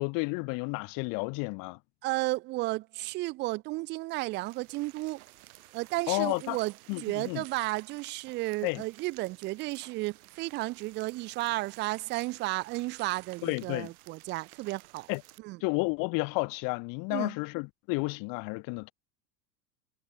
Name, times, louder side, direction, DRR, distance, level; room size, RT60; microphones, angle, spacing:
voice 1, 0.0-1.8 6.1-6.6 6.9-7.4 8.6-8.8 13.4-13.9 15.1-15.2 15.6-18.9, left 31 dB, 45° left, 0.9 m, -31 dB
voice 2, 2.0-5.2 5.7-15.1 15.4-15.6 17.1-17.3, right 21 dB, 25° right, 0.4 m, -33 dB
sound 1, 4.3-15.4, right 18 dB, 60° right, 7.6 m, -54 dB
figure-of-eight pair, 80°, 49 cm